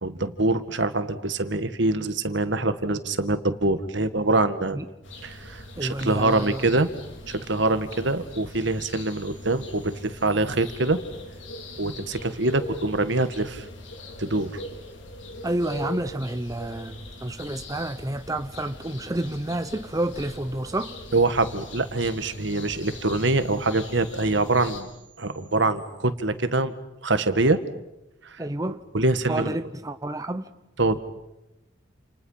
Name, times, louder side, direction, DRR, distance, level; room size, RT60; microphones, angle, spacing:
voice 1, 0.0-4.8 5.2-6.9 7.3-11.0 11.8-13.7 14.2-14.6 21.1-24.9 25.2-26.7 27.0-27.6 28.2-28.4 28.7-29.5 30.8-31.0, right 2 dB, 65° right, 1.9 m, -24 dB
sound 1, 5.0-24.8, left 2 dB, 70° left, 4.4 m, -41 dB
voice 2, 5.8-6.6 15.4-20.9 28.4-28.8 29.3-30.5, right 1 dB, 20° right, 0.9 m, -29 dB
29.5 x 29.0 x 5.8 m
head